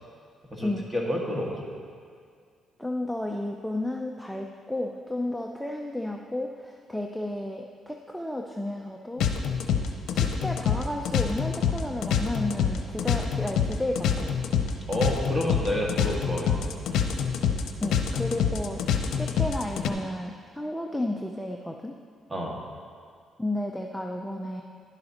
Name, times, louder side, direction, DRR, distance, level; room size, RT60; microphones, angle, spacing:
voice 1, 0.5-1.7 14.9-16.7 22.3-22.6, equal, 15° right, -2 dB, 2.0 m, -29 dB
voice 2, 2.8-9.3 10.1-14.3 17.8-22.0 23.4-24.6, left 1 dB, 5° left, 1 dB, 0.6 m, -32 dB
sound 1, 9.2-19.9, left 8 dB, 80° left, 0.7 m, -26 dB
11.5 x 10.5 x 3.0 m, 2.2 s
cardioid pair, 90°, 0 cm